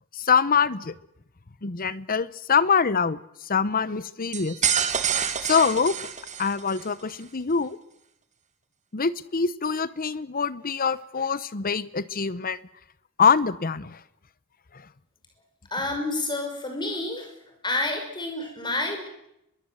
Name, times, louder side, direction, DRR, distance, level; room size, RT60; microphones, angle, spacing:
voice 1, 0.1-0.9 1.6-3.2 3.4-4.6 5.4-5.9 6.4-7.8 8.9-12.6 13.2-14.0 14.7-14.9, left 6 dB, 40° left, 17 dB, 0.9 m, -24 dB
sound 1, 4.3-6.9, right 8 dB, 35° right, 1.8 m, -27 dB
voice 2, 15.7-17.3 17.6-19.1, left 2 dB, 20° left, 4 dB, 5.9 m, -29 dB
23.5 x 22.0 x 7.9 m, 0.83 s
head